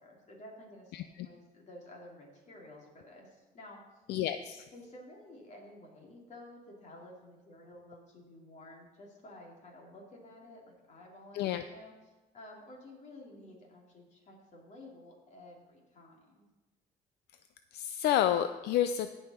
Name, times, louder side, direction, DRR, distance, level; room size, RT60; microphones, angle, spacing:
voice 1, 0.0-0.9 1.2-4.0 4.7-11.9 12.3-16.4, left 1 dB, 45° left, -1 dB, 3.0 m, -52 dB
voice 2, 4.1-4.6 11.3-11.6 17.7-19.2, left 11 dB, 75° left, 10 dB, 0.4 m, -29 dB
16.5 x 5.6 x 4.3 m, 1.2 s
cardioid pair, 110°, 17 cm